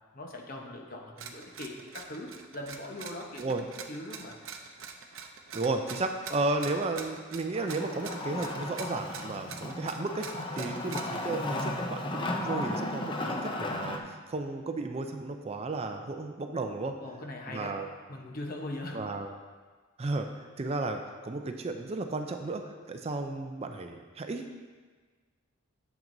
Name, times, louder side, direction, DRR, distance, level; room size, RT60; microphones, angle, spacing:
voice 1, 0.1-4.4 10.6-10.8 17.0-17.8 18.1-19.1, left 1 dB, 45° left, 1 dB, 0.9 m, -41 dB
sound 1, 1.2-11.3, right 6 dB, 75° right, 0.6 m, -44 dB
voice 2, 5.5-17.0 17.5-17.9 18.9-19.3 20.0-20.3 20.6-24.6, right 3 dB, 30° right, 5 dB, 0.4 m, -34 dB
Wood, 7.5-14.0, left 2 dB, 25° left, 0.5 m, -35 dB
9.1 x 7.2 x 2.6 m, 1.4 s
head